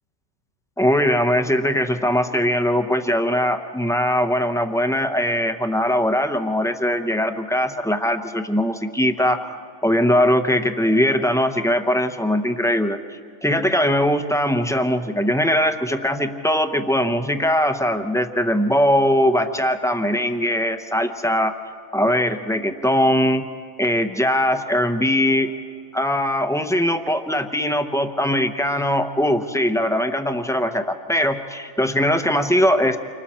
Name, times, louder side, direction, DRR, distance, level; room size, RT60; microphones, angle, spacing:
voice 1, 0.8-13.0 13.4-21.5 21.9-23.5 23.8-25.5 25.9-33.0, equal, 5° left, 7 dB, 0.4 m, -21 dB
29.0 x 25.0 x 4.3 m, 2.2 s
omnidirectional pair, 1.5 m